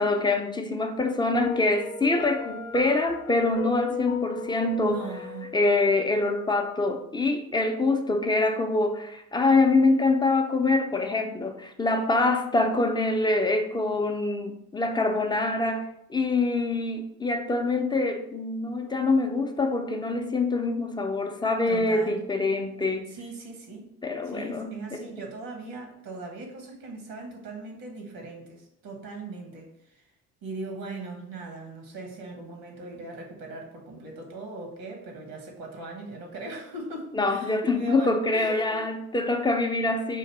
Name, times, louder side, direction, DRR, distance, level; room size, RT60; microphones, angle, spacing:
voice 1, 0.0-5.0 5.5-23.1 24.0-25.0 37.1-40.2, left 2 dB, 10° left, 0.4 m, -25 dB
Piano, 1.4-6.4, left 5 dB, 85° left, 0.6 m, -36 dB
voice 2, 4.8-5.5 21.7-22.2 23.1-23.9 24.2-30.0 30.4-38.8, right 3 dB, 70° right, 1.1 m, -39 dB
3.8 x 2.5 x 4.5 m
hypercardioid pair, 50°, 45 cm